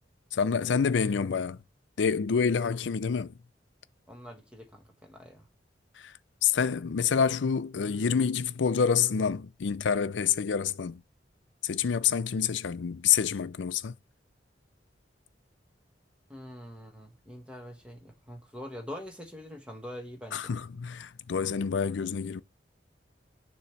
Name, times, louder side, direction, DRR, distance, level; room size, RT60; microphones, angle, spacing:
voice 1, 0.3-1.6 2.0-3.3 6.4-11.0 11.6-13.9 20.3-22.4, left 6 dB, 85° left, 0.5 m, -27 dB
voice 2, 4.1-5.4 16.3-20.4, equal, 5° right, 1.3 m, -44 dB
6.8 x 3.1 x 5.9 m
head